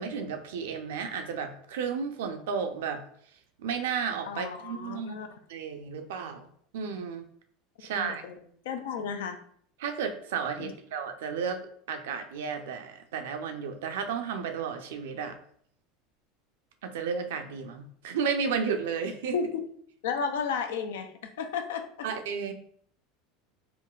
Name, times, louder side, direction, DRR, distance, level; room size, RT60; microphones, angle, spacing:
voice 1, 0.0-3.0 3.6-5.2 5.5-6.5 6.7-7.3 7.8-8.2 9.8-15.4 16.8-19.4 22.0-22.5, right 6 dB, 85° right, 6 dB, 0.4 m, -33 dB
voice 2, 4.3-5.3 8.0-8.3 8.7-9.4 10.6-10.7 19.3-19.5 20.0-22.1, left 6 dB, 85° left, 7 dB, 0.4 m, -33 dB
3.8 x 2.2 x 2.3 m, 0.62 s
supercardioid pair, 105°, 0 cm